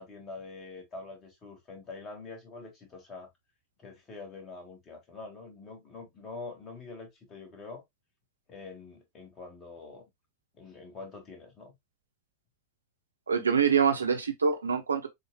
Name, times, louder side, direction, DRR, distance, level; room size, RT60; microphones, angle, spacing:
voice 1, 0.0-3.3 3.8-7.8 8.5-10.0 10.5-11.7, left 3 dB, 25° left, 1.9 m, -45 dB
voice 2, 13.3-15.1, right 6 dB, 75° right, 1.0 m, -25 dB
6.6 x 2.5 x 2.2 m
figure-of-eight pair, 90°, 0 cm